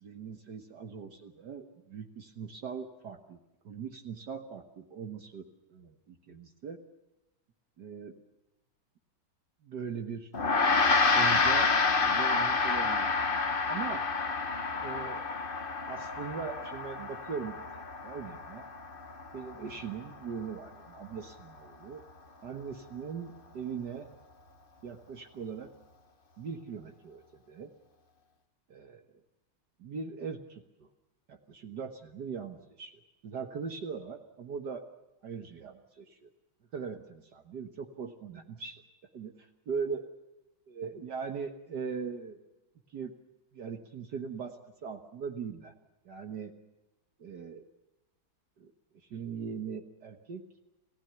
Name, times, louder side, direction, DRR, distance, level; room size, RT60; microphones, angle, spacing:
voice 1, 0.0-3.4 3.6-6.8 7.8-8.1 9.6-10.3 11.1-11.7 12.0-13.2 13.7-14.1 14.7-15.2 15.9-17.6 18.0-18.6 19.3-22.0 22.4-24.1 24.8-25.7 26.4-27.2 27.5-27.7 28.7-29.0 29.8-30.9 31.3-32.9 33.2-34.8 35.2-36.3 36.7-38.8 39.1-40.0 40.7-42.4 42.9-43.1 43.5-44.6 44.8-45.7 46.1-46.5 47.2-47.6 48.6-48.7 49.1-50.4, right 6 dB, 55° right, 5 dB, 1.8 m, -40 dB
Gong, 10.3-20.0, left 4 dB, 30° left, 1.3 m, -29 dB
27.5 x 16.5 x 7.0 m, 1.0 s
omnidirectional pair, 2.3 m